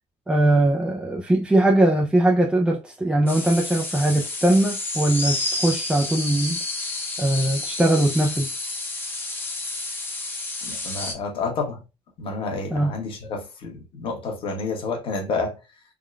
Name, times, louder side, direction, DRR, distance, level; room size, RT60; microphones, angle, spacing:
voice 1, 0.3-6.6 7.2-8.5 12.7-12.9, right 1 dB, 10° right, 0.4 m, -20 dB
sound 1, 3.3-11.1, left 2 dB, 15° left, 0.8 m, -30 dB
voice 2, 10.7-11.8 12.2-15.5, left 3 dB, 45° left, 1.2 m, -29 dB
3.6 x 2.2 x 2.3 m
cardioid pair, 140°, 12 cm